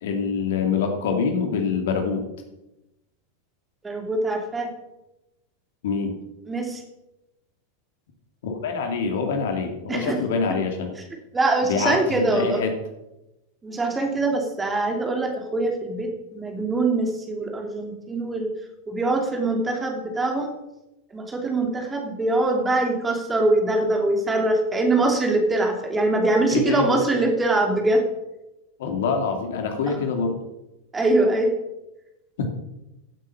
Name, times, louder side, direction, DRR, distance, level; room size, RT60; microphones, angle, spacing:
voice 1, 0.0-2.2 5.8-6.2 8.4-10.9 11.7-12.7 26.5-27.1 28.8-30.4 32.4-32.6, left 5 dB, 55° left, 4 dB, 2.3 m, -25 dB
voice 2, 3.8-4.7 6.5-6.8 9.9-10.2 11.3-12.6 13.6-18.5 18.9-20.5 21.1-28.0 29.9-30.0 30.9-31.5, right 2 dB, 15° right, 3 dB, 2.7 m, -23 dB
16.0 x 8.5 x 5.7 m, 0.95 s
figure-of-eight pair, 90°, 0 cm